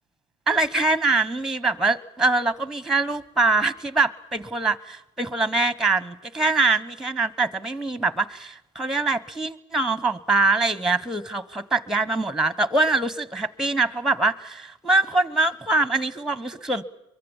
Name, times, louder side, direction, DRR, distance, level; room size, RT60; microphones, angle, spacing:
voice 1, 0.5-16.8, right 3 dB, 5° right, 18 dB, 1.3 m, -23 dB
23.5 x 23.0 x 7.4 m, 0.86 s
hypercardioid pair, 75°, 17 cm